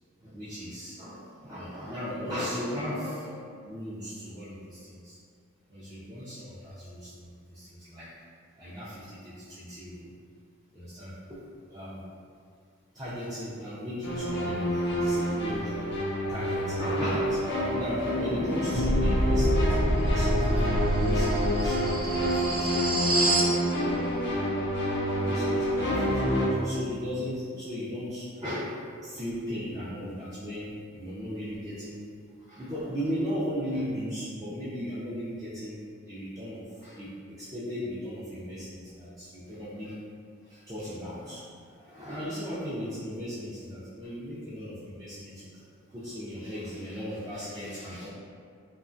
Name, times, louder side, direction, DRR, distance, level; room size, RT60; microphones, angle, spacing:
voice 1, 0.2-3.3 3.6-5.2 5.7-8.1 8.5-10.1 10.7-11.4 11.7-12.0 12.9-15.7 16.3-23.0 25.1-26.3 26.6-32.0 32.4-40.0 40.4-45.6 45.9-48.1, equal, 15° right, -12 dB, 0.4 m, -36 dB
sound 1, 14.0-26.5, equal, 55° left, 0.4 m, -28 dB
sound 2, 18.7-23.6, right 1 dB, 80° right, 0.5 m, -26 dB
2.7 x 2.2 x 2.5 m, 2.2 s
head